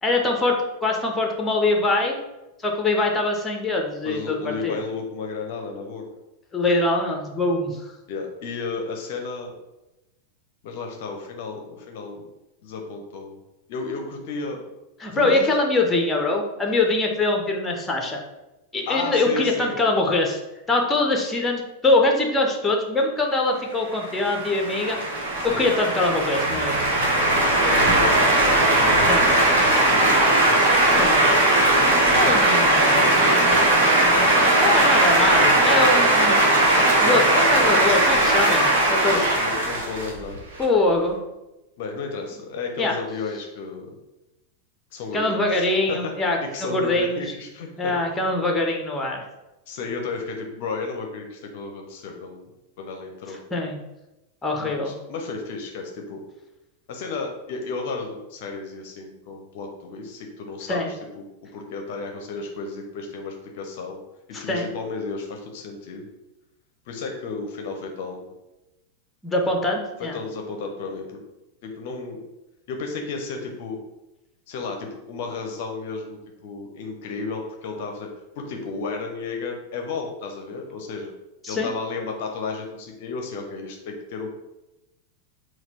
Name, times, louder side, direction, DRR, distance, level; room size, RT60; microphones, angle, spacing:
voice 1, 0.0-2.2 2.6-4.8 6.5-7.7 15.0-18.2 18.7-20.4 20.7-25.0 25.4-26.9 29.1-29.3 30.8-31.2 32.1-33.2 33.5-33.6 34.6-39.2 40.6-41.2 42.8-42.9 45.1-47.2 47.8-49.2 53.3-53.8 54.4-54.9 60.7-60.9 64.3-64.7 69.2-70.2 81.4-81.7, left 2 dB, 15° left, 2 dB, 0.7 m, -23 dB
voice 2, 4.0-6.0 8.1-9.5 10.6-12.2 12.6-13.4 13.7-14.6 15.1-15.5 18.9-19.8 25.5-25.6 27.6-29.4 29.9-31.7 32.9-33.8 34.5-35.1 39.1-40.4 41.8-43.9 44.9-48.3 49.7-52.4 52.8-53.4 54.6-56.2 56.9-61.2 61.5-64.0 64.3-66.1 66.9-68.3 70.1-71.2 71.6-72.2 72.7-73.8 74.5-78.1 78.4-81.1 81.5-84.3, left 4 dB, 50° left, 3 dB, 0.6 m, -33 dB
sound 1, 24.0-40.6, right 1 dB, 55° right, 1.2 m, -19 dB
4.1 x 2.2 x 4.3 m, 0.96 s
figure-of-eight pair, 90°, 0 cm